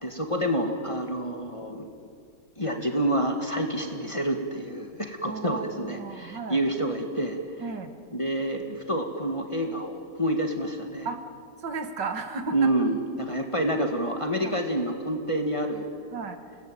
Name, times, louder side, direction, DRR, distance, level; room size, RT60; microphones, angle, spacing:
voice 1, 0.0-1.9 2.6-7.4 8.1-11.1 12.5-15.9, right 1 dB, 15° left, 3 dB, 1.9 m, -28 dB
voice 2, 5.3-6.6 7.6-7.9 11.1-11.2 11.6-12.7 14.4-14.6 16.1-16.4, right 4 dB, 70° right, 7 dB, 2.1 m, -34 dB
29.5 x 19.0 x 9.1 m, 2.4 s
omnidirectional pair, 2.0 m